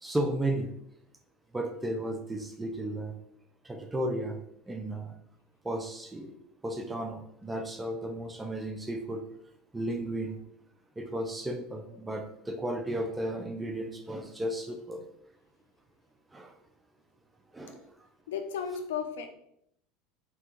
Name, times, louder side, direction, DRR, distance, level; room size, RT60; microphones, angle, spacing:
voice 1, 0.0-0.7 1.5-3.1 3.6-4.4 4.7-5.1 5.6-6.3 6.6-9.2 9.7-10.4 11.0-15.0 16.3-16.5 17.5-17.9, right 1 dB, 10° right, 5 dB, 0.4 m, -34 dB
voice 2, 18.3-19.3, left 7 dB, 90° left, 5 dB, 0.4 m, -34 dB
3.2 x 2.3 x 2.9 m, 0.73 s
supercardioid pair, 105°, 0 cm